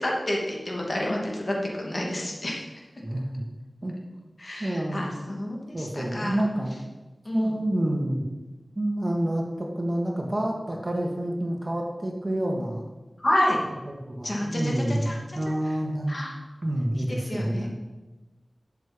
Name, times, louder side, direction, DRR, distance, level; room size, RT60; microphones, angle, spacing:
voice 1, 0.0-2.7 4.4-6.4 7.2-7.6 13.2-13.6 14.2-15.4 15.6-15.8 16.1-16.3 17.0-17.7, left 1 dB, 45° left, -1 dB, 2.6 m, -29 dB
voice 2, 3.0-3.5 3.8-3.9 4.6-5.1 5.7-6.7 7.3-8.2 8.8-12.9 13.9-16.2 16.6-17.7, right 1 dB, 30° right, 0 dB, 2.0 m, -28 dB
12.0 x 6.9 x 5.3 m, 1.2 s
wide cardioid pair, 70°, 0 cm